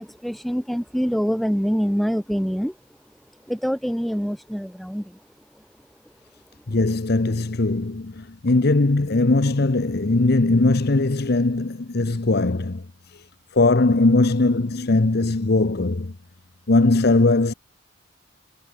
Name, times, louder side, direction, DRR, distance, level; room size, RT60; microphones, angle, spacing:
voice 1, 0.0-2.8 3.4-5.2 5.5-5.7 6.0-6.1, equal, ahead, 6.3 m, -25 dB
voice 2, 6.7-12.8 13.1-13.2 13.5-16.1 16.7-17.5, left 2 dB, 55° left, 0.9 m, -20 dB
head